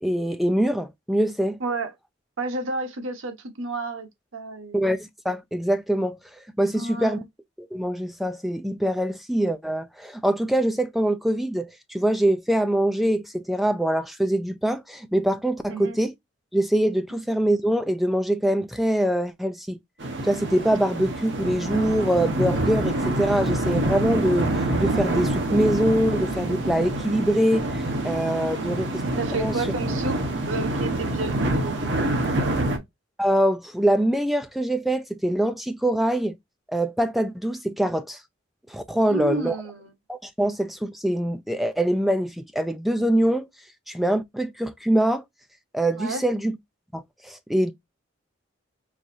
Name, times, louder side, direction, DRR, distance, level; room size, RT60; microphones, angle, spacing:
voice 1, 0.0-1.6 4.7-6.2 6.6-7.2 7.6-16.1 16.5-19.8 20.2-24.5 24.8-29.0 29.4-29.6 33.2-36.4 36.7-38.2 38.7-39.6 40.1-43.5 43.9-45.2 45.7-46.5 46.9-47.7, right 1 dB, ahead, 0.4 m, -24 dB
voice 2, 1.6-1.9 2.4-4.8 6.7-7.2 15.7-16.0 28.4-28.9 29.2-30.2 30.5-32.8 39.1-39.9 46.0-46.2, right 3 dB, 85° right, 1.0 m, -32 dB
sound 1, 20.0-32.8, right 1 dB, 65° right, 1.1 m, -26 dB
4.7 x 2.7 x 2.6 m
head